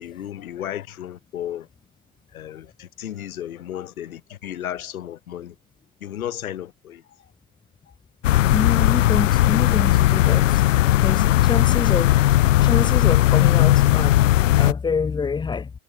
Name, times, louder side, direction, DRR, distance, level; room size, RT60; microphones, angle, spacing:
voice 1, 0.0-1.7 2.3-5.5 6.0-7.0, left 11 dB, 75° left, 6.8 m, -34 dB
sound 1, 8.2-14.7, left 15 dB, 60° left, 2.0 m, -17 dB
voice 2, 8.5-10.6 11.0-12.1 12.6-15.7, left 5 dB, 10° left, 4.0 m, -27 dB
supercardioid pair, 155°, 42 cm